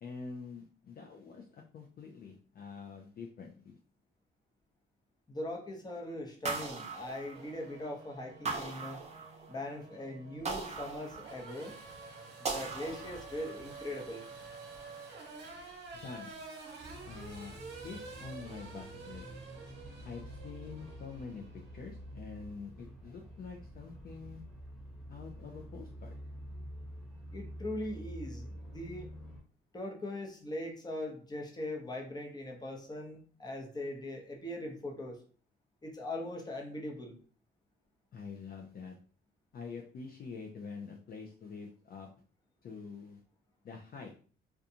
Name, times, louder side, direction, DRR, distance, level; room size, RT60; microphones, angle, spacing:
voice 1, 0.0-3.8 15.9-16.3 17.1-17.6 17.8-19.3 20.0-21.4 21.7-24.4 25.1-26.2 38.1-39.0 39.5-42.1 42.6-43.2 43.6-44.1, left 5 dB, 50° left, 1 dB, 0.4 m, -46 dB
voice 2, 5.3-9.0 9.5-11.7 12.4-14.2 27.3-29.1 29.7-35.2 35.8-37.1, left 1 dB, 20° left, 1 dB, 0.8 m, -40 dB
sound 1, 6.5-7.8 8.5-9.6 10.5-11.7 12.5-13.6, right 4 dB, 35° right, 0.7 m, -39 dB
Race car auto racing / Accelerating revving vroom, 7.3-22.1, right 3 dB, 60° right, 0.9 m, -49 dB
sound 2, 16.8-29.4, equal, ahead, 1.1 m, -48 dB
2.5 x 2.3 x 2.7 m, 0.42 s
cardioid pair, 90°, 20 cm